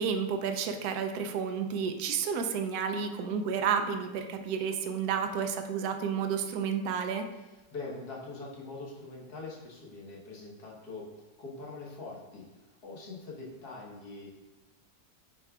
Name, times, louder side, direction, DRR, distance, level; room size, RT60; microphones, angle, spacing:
voice 1, 0.0-7.3, right 6 dB, 70° right, 6 dB, 1.0 m, -31 dB
voice 2, 7.4-11.1 11.4-14.3, left 3 dB, 60° left, -3 dB, 1.7 m, -43 dB
8.1 x 5.1 x 2.3 m, 1.1 s
omnidirectional pair, 1.9 m